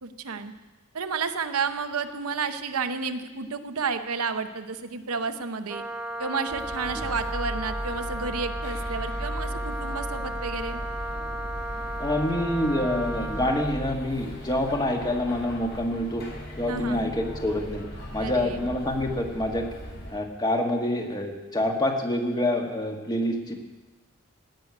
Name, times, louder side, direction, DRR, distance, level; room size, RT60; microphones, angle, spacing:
voice 1, 0.0-0.5 0.9-5.8 6.2-10.8 16.7-17.1 18.2-18.7, right 5 dB, 85° right, 8 dB, 0.9 m, -31 dB
Wind instrument woodwind instrument, 5.7-13.7, right 1 dB, 5° right, 1.2 m, -35 dB
sound 1, 6.5-20.1, equal, 50° left, 4.4 m, -37 dB
voice 2, 12.0-16.2 16.6-17.8 18.1-19.7 20.1-23.6, left 1 dB, 20° left, 2 dB, 1.5 m, -27 dB
17.0 x 6.4 x 9.4 m, 1.2 s
head